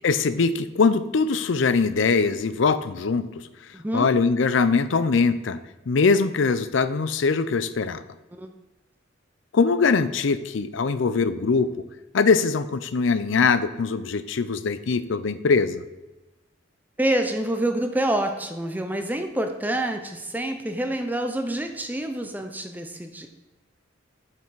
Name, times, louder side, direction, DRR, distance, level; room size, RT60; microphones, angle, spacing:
voice 1, 0.0-3.3 3.9-5.6 5.9-8.0 9.5-11.7 12.1-15.8, left 4 dB, 75° left, 13 dB, 0.5 m, -22 dB
voice 2, 3.7-4.1 8.3-8.5 17.0-23.3, right 1 dB, 10° right, 5 dB, 0.5 m, -27 dB
7.5 x 5.9 x 4.7 m, 1.1 s
head